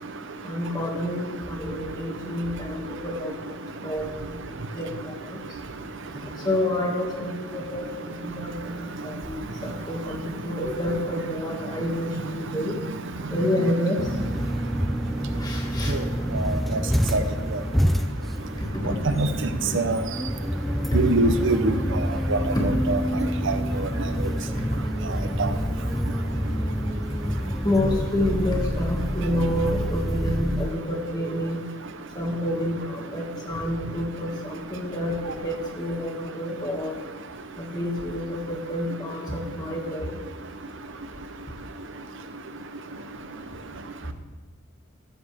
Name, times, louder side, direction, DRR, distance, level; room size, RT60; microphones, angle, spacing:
voice 1, 0.5-4.1 4.3-4.4 4.7-5.4 6.4-7.9 8.2-12.7 13.3-14.0 15.4-15.9 18.8-19.0 20.9-21.0 27.6-31.6 32.2-35.2 35.4-36.9 37.6-40.2, left 1 dB, 20° left, 0 dB, 1.9 m, -28 dB
sound 1, 14.0-30.7, equal, ahead, 0.4 m, -27 dB
voice 2, 20.9-21.7 22.3-23.0 23.5-23.6 25.4-25.5, right 3 dB, 60° right, 9 dB, 0.6 m, -23 dB
13.5 x 13.0 x 3.5 m, 1.3 s
head